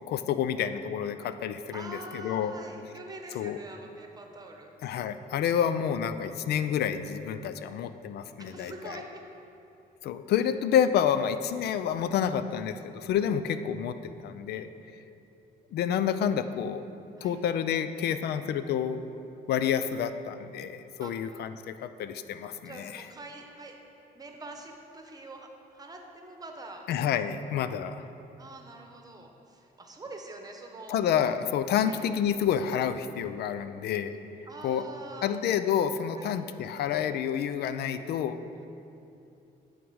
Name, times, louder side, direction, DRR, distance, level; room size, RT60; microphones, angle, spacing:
voice 1, 0.1-2.5 3.3-3.6 4.8-9.0 10.0-14.7 15.7-16.8 17.2-19.0 19.5-23.0 26.9-28.1 30.9-34.2 34.6-34.8 35.2-38.4, left 8 dB, 75° left, 11 dB, 0.4 m, -29 dB
voice 2, 1.7-4.7 8.4-9.2 17.2-17.4 21.0-21.1 22.6-23.8 24.1-26.9 28.4-31.0 31.8-32.0 34.5-35.4 36.2-36.3, right 2 dB, 20° right, 3 dB, 1.0 m, -44 dB
9.0 x 3.7 x 6.2 m, 2.8 s
cardioid pair, 100°, 17 cm